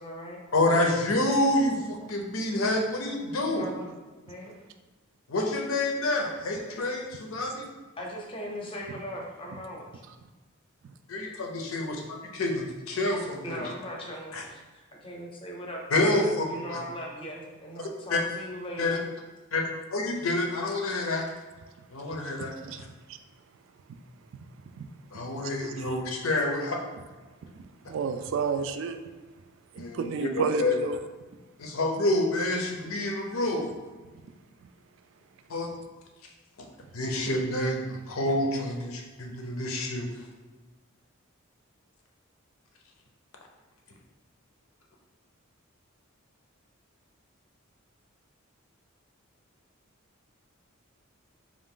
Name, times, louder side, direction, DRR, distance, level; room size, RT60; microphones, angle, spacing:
voice 1, 0.0-0.4 3.5-3.9 4.3-4.5 8.0-10.0 13.4-19.1, equal, 25° left, -1 dB, 0.7 m, -39 dB
voice 2, 0.5-3.7 5.3-7.7 11.1-13.6 14.3-14.4 15.9-16.4 16.7-16.8 18.1-18.2 18.8-19.0 19.5-19.6 19.9-21.2 21.9-22.5 25.1-26.8 29.8-30.7 31.6-33.7 35.5-35.7 36.9-40.1, left 2 dB, 90° left, 1 dB, 0.7 m, -28 dB
voice 3, 22.2-23.2 24.7-24.9 25.1-26.0 27.5-29.0 29.7-31.0, right 5 dB, 65° right, 9 dB, 0.3 m, -32 dB
3.8 x 2.5 x 3.7 m, 1.3 s
head